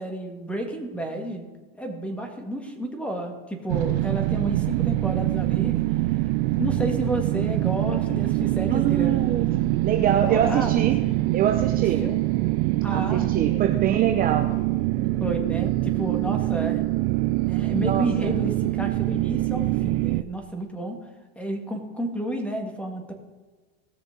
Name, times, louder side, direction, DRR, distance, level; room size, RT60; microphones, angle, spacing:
voice 1, 0.0-1.4 1.8-9.3 9.9-10.8 12.0-12.2 12.8-13.6 15.2-16.8 17.5-21.0 21.4-23.1, right 1 dB, 5° left, 3 dB, 1.8 m, -31 dB
sound 1, 3.7-20.2, right 18 dB, 60° right, 0.4 m, -24 dB
voice 2, 8.7-11.0 11.3-12.0 12.9-14.6 14.9-15.2 16.3-16.4 17.8-18.3, right 9 dB, 30° right, 4 dB, 0.7 m, -25 dB
18.0 x 6.7 x 3.9 m, 1.3 s
supercardioid pair, 130°, 29 cm